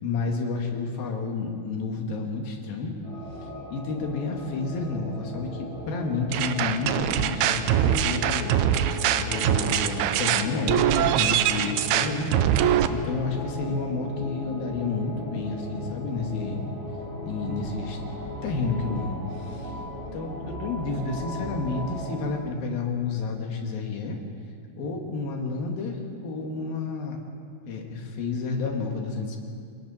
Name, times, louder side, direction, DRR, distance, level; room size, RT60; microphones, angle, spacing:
voice 1, 0.0-2.9 3.7-8.5 9.2-12.3 12.9-16.7 17.2-18.0 18.4-19.7 20.1-24.2 24.8-27.2 27.7-29.4, left 4 dB, 65° left, 1 dB, 3.8 m, -30 dB
sound 1, 3.0-22.2, left 1 dB, 35° left, 7.3 m, -37 dB
sound 2, 6.3-12.9, right 11 dB, 90° right, 2.7 m, -23 dB
29.0 x 22.5 x 4.3 m, 2.2 s
omnidirectional pair, 4.5 m